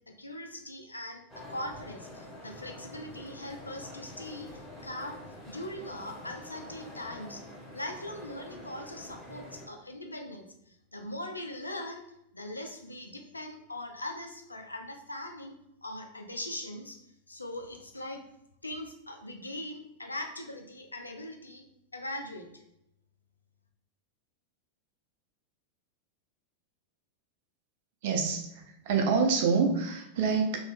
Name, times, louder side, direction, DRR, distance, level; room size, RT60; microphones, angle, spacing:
voice 1, 0.2-7.4 7.7-12.0 12.3-15.5 15.8-17.0 17.3-18.2 18.6-21.6 21.9-22.6, left 1 dB, 80° left, 3 dB, 0.4 m, -41 dB
sound 1, 1.3-9.7, left 1 dB, 5° left, 1.1 m, -47 dB
voice 2, 28.0-30.6, right 5 dB, 50° right, 2 dB, 0.5 m, -27 dB
2.8 x 2.0 x 3.2 m, 0.80 s
figure-of-eight pair, 90°, 0 cm